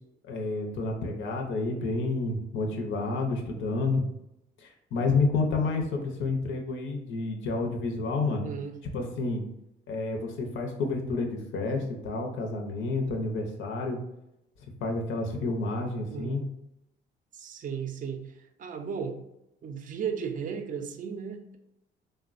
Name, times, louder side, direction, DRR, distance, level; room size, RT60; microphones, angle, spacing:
voice 1, 0.3-4.0 4.6-8.5 8.9-9.4 9.9-14.0 14.8-16.5, left 3 dB, 75° left, 2 dB, 0.6 m, -29 dB
voice 2, 8.4-8.7 16.1-16.4 17.3-18.2 18.6-19.2 19.6-21.6, right 7 dB, 45° right, 5 dB, 0.4 m, -35 dB
3.2 x 2.1 x 2.4 m, 0.85 s
cardioid pair, 90°, 20 cm